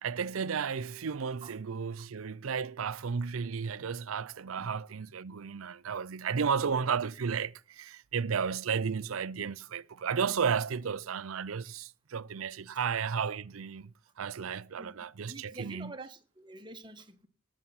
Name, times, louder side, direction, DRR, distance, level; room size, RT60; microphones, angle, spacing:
voice 1, 0.0-13.9 14.2-15.9, right 6 dB, 90° right, 0.6 m, -33 dB
voice 2, 15.2-17.3, right 2 dB, 20° right, 1.4 m, -47 dB
18.5 x 7.4 x 5.7 m
head